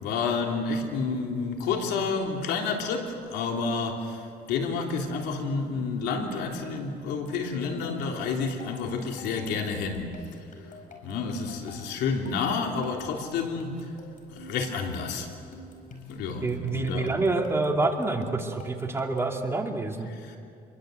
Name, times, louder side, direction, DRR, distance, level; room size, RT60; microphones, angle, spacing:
voice 1, 0.0-4.2 4.5-10.2 11.0-13.8 14.3-15.3 16.1-17.2 20.1-20.4, left 4 dB, 85° left, 2 dB, 3.4 m, -30 dB
sound 1, 7.1-19.4, left 3 dB, 50° left, 5.2 m, -47 dB
voice 2, 16.4-20.1, right 3 dB, 15° right, 2 dB, 2.6 m, -27 dB
27.5 x 22.5 x 8.0 m, 2.4 s
cardioid pair, 110°, 17 cm